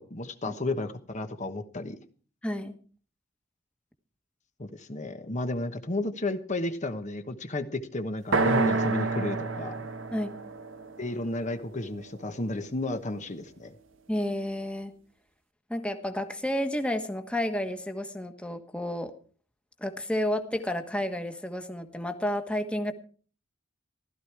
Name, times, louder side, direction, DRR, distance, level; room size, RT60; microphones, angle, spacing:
voice 1, 0.0-2.0 4.6-9.9 11.0-13.7, left 2 dB, 40° left, 8 dB, 1.2 m, -33 dB
voice 2, 2.4-2.8 10.1-10.3 14.1-14.9 15.7-19.1 19.8-22.9, left 1 dB, 5° left, 7 dB, 1.4 m, -31 dB
sound 1, 8.3-12.2, right 3 dB, 90° right, 1.5 m, -29 dB
16.0 x 13.0 x 4.7 m, 0.41 s
head